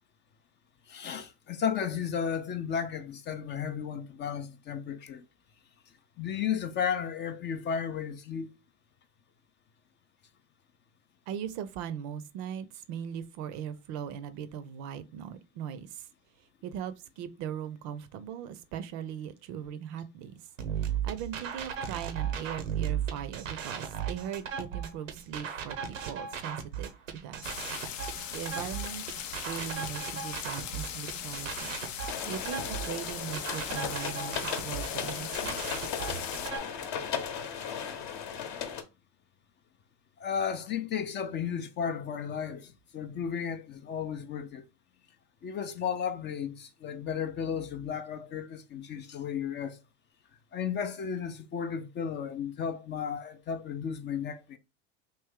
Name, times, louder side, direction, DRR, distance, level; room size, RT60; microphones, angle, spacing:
voice 1, 0.9-5.2 6.2-8.5 32.4-32.5 40.2-44.6 45.4-49.8 50.5-54.6, left 7 dB, 30° left, 0.4 m, -34 dB
voice 2, 11.3-16.1 16.4-20.3 20.8-27.6 28.3-29.1 29.5-31.7 32.3-35.6, right 9 dB, 50° right, 0.5 m, -39 dB
sound 1, 20.6-36.6, right 8 dB, 90° right, 0.8 m, -36 dB
sound 2, 27.4-36.5, left 9 dB, 85° left, 0.6 m, -39 dB
sound 3, 32.1-38.8, left 7 dB, 50° left, 0.9 m, -36 dB
3.2 x 2.6 x 3.6 m
hypercardioid pair, 85°, 37 cm